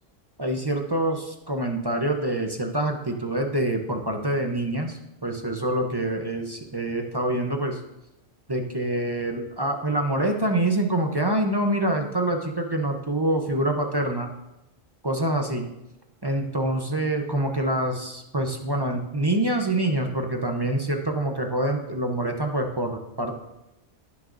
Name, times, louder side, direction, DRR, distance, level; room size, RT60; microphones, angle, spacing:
voice 1, 0.4-7.8 8.5-14.3 15.0-15.7 16.2-23.3, right 1 dB, 25° right, 3 dB, 0.6 m, -26 dB
17.0 x 6.4 x 2.6 m, 0.91 s
omnidirectional pair, 1.3 m